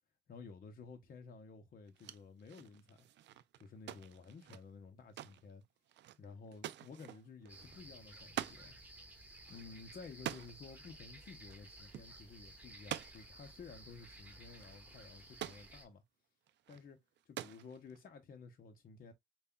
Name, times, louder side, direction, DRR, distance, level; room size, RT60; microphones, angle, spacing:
voice 1, 0.3-3.1 3.6-5.6 6.2-8.8 9.5-16.0 16.7-19.1, left 4 dB, 45° left, 0.7 m, -54 dB
sound 1, 1.9-8.7 8.9-9.0 9.3-10.7 11.4-11.7 11.9-12.1 12.7-13.5 14.2-14.3 14.5-15.7 16.5-16.8 17.2-18.0, right 12 dB, 65° right, 0.4 m, -47 dB
sound 2, 7.5-15.9, right 1 dB, 10° right, 1.3 m, -56 dB
5.3 x 2.3 x 2.3 m
cardioid pair, 90°, 20 cm